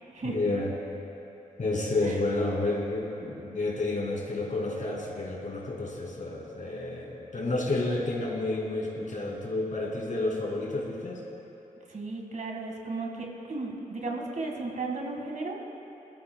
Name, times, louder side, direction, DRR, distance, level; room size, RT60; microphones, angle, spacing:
voice 1, 0.2-0.7 1.6-11.2, left 2 dB, 60° left, -3 dB, 2.6 m, -30 dB
voice 2, 11.9-15.7, right 3 dB, 55° right, 0 dB, 1.8 m, -35 dB
19.5 x 12.5 x 2.3 m, 3.0 s
cardioid pair, 50°, 15 cm